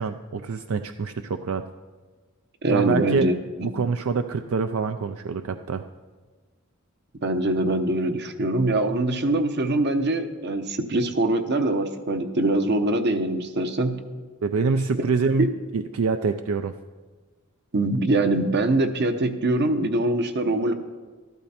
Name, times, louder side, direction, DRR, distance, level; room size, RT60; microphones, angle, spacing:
voice 1, 0.0-1.6 2.7-3.3 3.6-5.8 14.4-16.7, right 4 dB, 75° right, 8 dB, 0.4 m, -25 dB
voice 2, 2.6-3.3 7.2-14.0 15.4-15.5 17.7-20.7, right 2 dB, 55° right, 8 dB, 0.9 m, -23 dB
13.0 x 12.0 x 4.3 m, 1.4 s
head